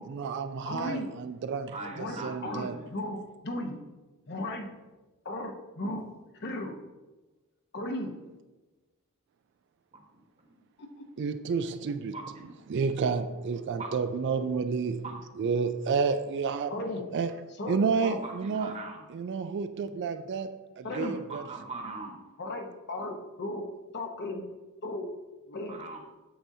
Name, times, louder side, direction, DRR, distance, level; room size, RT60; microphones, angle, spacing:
voice 1, 0.1-2.8 11.2-12.2 12.7-16.7 17.1-17.3 17.7-18.7 19.1-21.4, right 5 dB, 50° right, 0.3 m, -30 dB
voice 2, 0.7-1.1 1.9-3.8 4.3-4.7 5.3-6.0 6.3-6.8 7.7-8.1 10.8-11.3 16.7-17.1 17.6-18.2 20.8-21.2 22.4-23.6 23.9-24.4 24.8-25.1 25.5-25.8, left 1 dB, 50° left, 1.0 m, -36 dB
voice 3, 1.7-2.9 9.9-10.5 12.1-12.6 13.8-13.9 15.0-15.2 18.2-19.0 20.9-22.2 25.7-26.0, right 3 dB, 30° right, 1.1 m, -41 dB
8.7 x 7.4 x 2.7 m
head